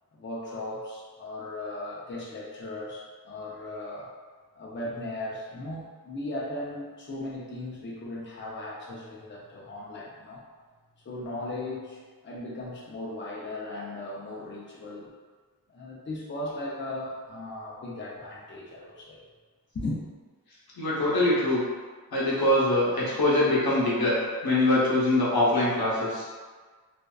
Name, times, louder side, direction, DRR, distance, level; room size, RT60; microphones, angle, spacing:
voice 1, 0.1-4.1 4.6-10.4 11.0-15.1 15.7-19.2 19.7-20.0, left 1 dB, 35° left, -5 dB, 0.5 m, -37 dB
voice 2, 20.7-21.6 22.1-26.3, left 1 dB, 85° left, -7 dB, 0.8 m, -23 dB
2.5 x 2.2 x 2.2 m, 1.5 s
wide cardioid pair, 80°, 36 cm